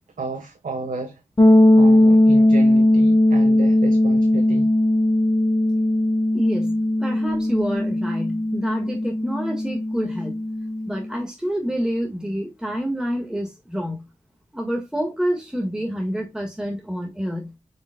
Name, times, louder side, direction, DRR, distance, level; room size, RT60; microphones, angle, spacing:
voice 1, 0.2-1.2 1.7-4.7, right 4 dB, 85° right, 1.2 m, -32 dB
sound 1, 1.4-11.1, left 1 dB, 35° left, 2.8 m, -18 dB
voice 2, 6.3-10.4 10.9-14.1 14.5-17.5, equal, 5° right, 1.7 m, -28 dB
8.1 x 5.2 x 2.2 m
wide cardioid pair, 70°, 13 cm